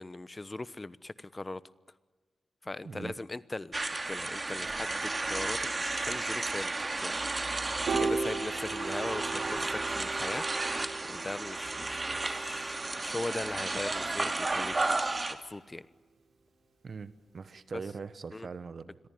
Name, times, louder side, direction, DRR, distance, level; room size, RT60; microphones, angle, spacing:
voice 1, 0.0-1.6 2.6-7.1 7.4-10.4 11.1-14.8 15.3-15.9 17.7-17.8 18.3-18.5, left 2 dB, 30° left, 17 dB, 1.0 m, -40 dB
voice 2, 2.8-3.1 16.8-19.0, right 5 dB, 65° right, 14 dB, 1.6 m, -42 dB
sound 1, 3.7-15.3, right 2 dB, 35° right, 2.7 m, -33 dB
Piano, 7.9-14.2, right 4 dB, 85° right, 7.3 m, -37 dB
28.5 x 22.0 x 9.5 m, 1.3 s
cardioid pair, 55°, 0 cm